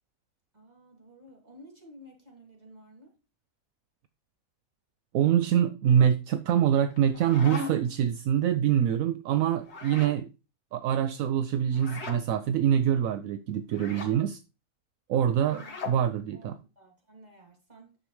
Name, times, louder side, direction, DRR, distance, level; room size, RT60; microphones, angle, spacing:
voice 1, 0.5-3.2 15.1-15.8 16.3-18.0, right 1 dB, 30° right, 2.8 m, -53 dB
voice 2, 5.1-10.3 10.7-14.4 15.1-15.6 15.9-16.5, right 9 dB, 75° right, 1.0 m, -25 dB
sound 1, 6.9-8.0 9.6-10.2 11.7-12.2 13.7-14.1 15.4-16.0, left 3 dB, 50° left, 1.8 m, -39 dB
10.0 x 7.0 x 3.1 m
omnidirectional pair, 1.5 m